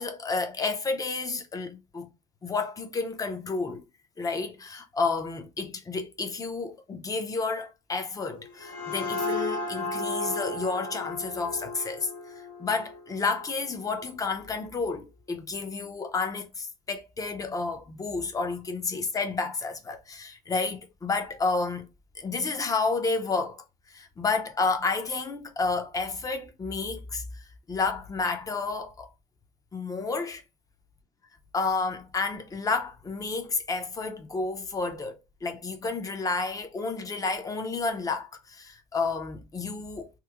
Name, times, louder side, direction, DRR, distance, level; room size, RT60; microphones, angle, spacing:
voice 1, 0.0-2.1 2.4-3.8 4.2-12.1 12.4-21.9 22.2-29.1 29.7-30.4 31.5-40.1, left 4 dB, 15° left, 0.5 m, -31 dB
sound 1, 8.3-13.8, left 2 dB, 90° left, 1.4 m, -34 dB
3.0 x 2.0 x 3.4 m
cardioid pair, 140°, 20 cm